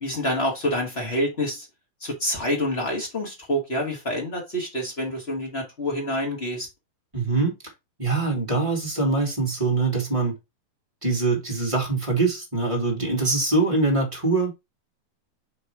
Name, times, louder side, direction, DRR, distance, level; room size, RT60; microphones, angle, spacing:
voice 1, 0.0-1.7 2.0-6.7, left 1 dB, 30° left, 1.1 m, -27 dB
voice 2, 7.1-7.5 8.0-10.3 11.0-14.5, right 3 dB, 15° right, 1.4 m, -23 dB
5.2 x 4.5 x 4.7 m
omnidirectional pair, 4.4 m